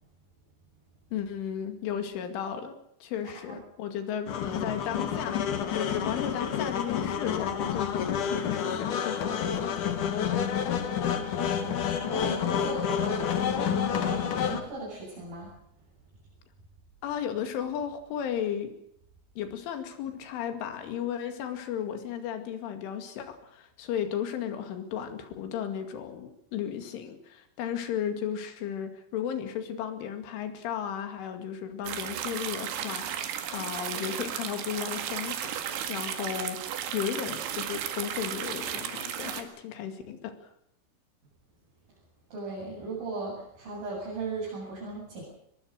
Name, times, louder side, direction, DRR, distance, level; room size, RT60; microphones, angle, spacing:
voice 1, 1.1-9.9 17.0-18.7 19.4-35.5 35.9-36.6 36.9-40.3, left 9 dB, 85° left, 7 dB, 4.8 m, -34 dB
sound 1, 4.3-14.6, left 8 dB, 55° left, 2.8 m, -29 dB
voice 2, 10.8-11.8 12.1-15.5 42.3-45.2, right 3 dB, 50° right, -6 dB, 9.4 m, -37 dB
sound 2, 31.8-39.4, right 9 dB, 75° right, 4.2 m, -34 dB
23.0 x 22.0 x 6.6 m, 0.73 s
omnidirectional pair, 5.4 m